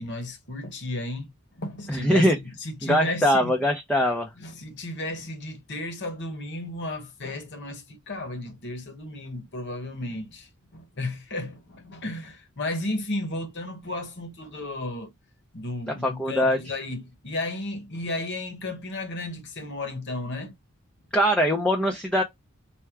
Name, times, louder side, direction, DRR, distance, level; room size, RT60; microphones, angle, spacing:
voice 1, 0.0-3.5 4.4-15.1 15.5-20.5, left 2 dB, 55° left, 1.1 m, -34 dB
voice 2, 1.9-2.4 2.8-4.3 16.0-16.6 21.1-22.2, equal, 5° left, 0.5 m, -22 dB
4.4 x 2.2 x 3.5 m
head